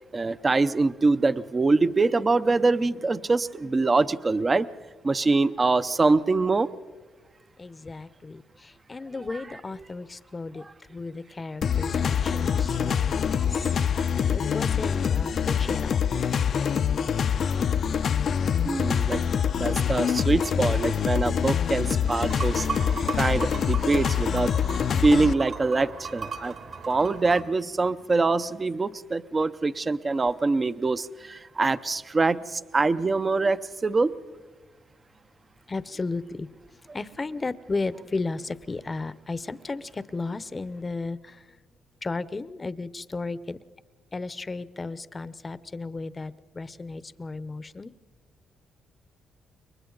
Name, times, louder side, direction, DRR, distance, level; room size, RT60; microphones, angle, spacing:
voice 1, 0.1-4.7 5.0-6.7 13.4-13.5 18.6-19.2 19.6-22.7 23.1-24.5 25.0-26.5 26.9-34.1, right 3 dB, 30° right, 13 dB, 0.7 m, -24 dB
voice 2, 7.6-13.7 14.3-16.0 35.7-36.5 36.9-41.4 42.0-43.6 44.1-47.9, left 3 dB, 25° left, 15 dB, 0.8 m, -34 dB
sound 1, 11.6-25.3, left 7 dB, 55° left, 0.6 m, -25 dB
sound 2, 22.1-27.4, right 5 dB, 60° right, 2.5 m, -37 dB
29.0 x 23.0 x 4.0 m, 1.4 s
cardioid pair, 90°, 0 cm